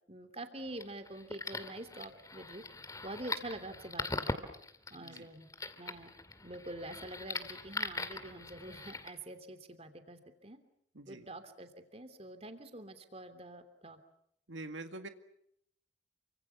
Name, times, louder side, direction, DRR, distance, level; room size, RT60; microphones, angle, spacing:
voice 1, 0.1-2.6 3.0-4.3 4.9-5.5 5.8-6.1 6.4-10.6 11.1-14.0, right 1 dB, 35° right, 9 dB, 3.0 m, -46 dB
sound 1, 0.6-9.1, left 3 dB, 20° left, 2.3 m, -41 dB
voice 2, 5.0-5.3 10.9-11.3 14.5-15.1, right 2 dB, 85° right, 8 dB, 2.0 m, -45 dB
29.5 x 25.5 x 7.1 m, 0.72 s
head